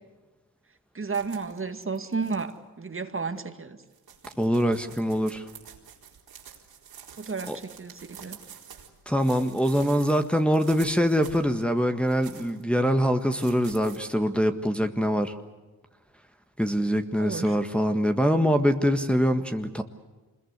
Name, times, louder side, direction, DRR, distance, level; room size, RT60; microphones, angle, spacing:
voice 1, 0.9-3.8 7.2-8.4 17.2-17.6, right 4 dB, 35° right, 2.1 m, -32 dB
sound 1, 1.1-2.5 3.4-3.5 3.8-8.9 9.2-11.6 12.0-12.6 13.3-14.0, right 7 dB, 80° right, 4.2 m, -48 dB
voice 2, 4.4-5.5 7.5-7.6 9.1-15.3 16.6-19.8, equal, 5° left, 1.7 m, -24 dB
25.5 x 21.5 x 8.2 m
cardioid pair, 60°, 37 cm